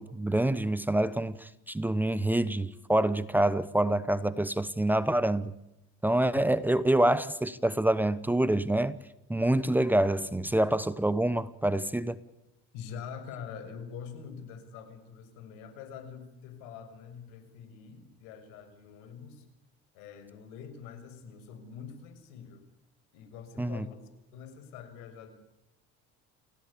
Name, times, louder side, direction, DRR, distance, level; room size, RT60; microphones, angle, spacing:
voice 1, 0.0-5.5 6.0-9.0 9.3-12.2 23.6-23.8, right 1 dB, 5° right, 1.0 m, -26 dB
voice 2, 12.7-19.5 19.9-22.6 23.1-24.0 24.3-25.3, left 7 dB, 85° left, 6.4 m, -45 dB
29.0 x 17.5 x 8.6 m
cardioid pair, 125°, 30 cm